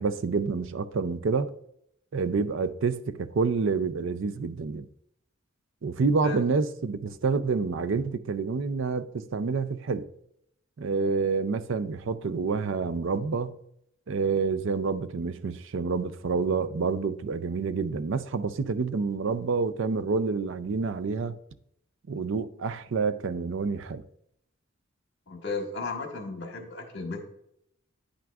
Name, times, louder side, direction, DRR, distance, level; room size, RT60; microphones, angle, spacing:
voice 1, 0.0-1.5 2.1-4.9 5.8-10.1 10.8-13.5 14.1-21.4 22.1-24.0, right 4 dB, 60° right, 0.4 m, -28 dB
voice 2, 25.3-27.2, left 3 dB, 55° left, 1.5 m, -34 dB
9.9 x 6.0 x 2.4 m
head